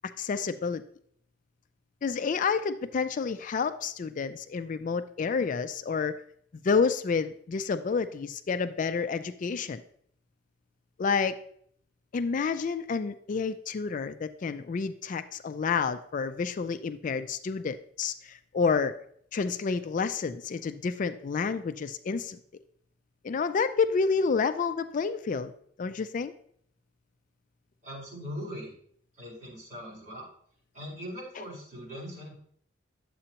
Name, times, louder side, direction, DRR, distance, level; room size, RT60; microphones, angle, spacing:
voice 1, 0.2-0.8 2.0-6.2 6.6-9.8 11.0-11.4 12.1-19.0 19.3-22.4 23.2-25.5 25.8-26.3, left 5 dB, 45° left, 11 dB, 0.3 m, -29 dB
voice 2, 27.8-28.7 29.2-30.3 30.7-32.3, equal, 40° right, -5 dB, 4.1 m, -40 dB
10.0 x 7.6 x 2.9 m, 0.65 s
head